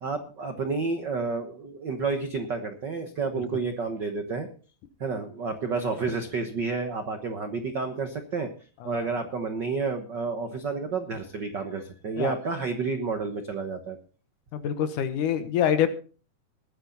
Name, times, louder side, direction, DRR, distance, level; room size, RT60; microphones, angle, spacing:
voice 1, 0.0-4.5 5.0-8.5 8.8-14.0, right 4 dB, 65° right, 7 dB, 1.1 m, -30 dB
voice 2, 14.5-15.9, left 9 dB, 70° left, 10 dB, 2.5 m, -26 dB
20.0 x 10.0 x 4.1 m, 0.37 s
omnidirectional pair, 4.0 m